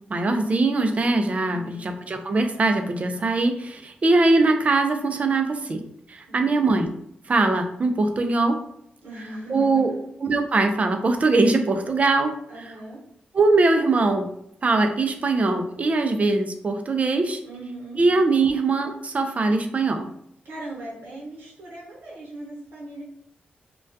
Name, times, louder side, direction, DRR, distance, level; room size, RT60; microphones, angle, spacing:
voice 1, 0.1-5.8 6.1-6.9 7.3-8.6 9.5-9.9 10.2-12.3 13.3-14.3 14.6-17.4 18.0-20.1, right 3 dB, 40° right, 6 dB, 0.4 m, -21 dB
voice 2, 1.4-1.9 6.3-6.5 9.0-10.0 12.5-13.0 17.4-18.0 20.4-23.0, right 1 dB, 85° right, -4 dB, 0.8 m, -39 dB
2.2 x 2.2 x 2.5 m, 0.71 s
cardioid pair, 75°, 4 cm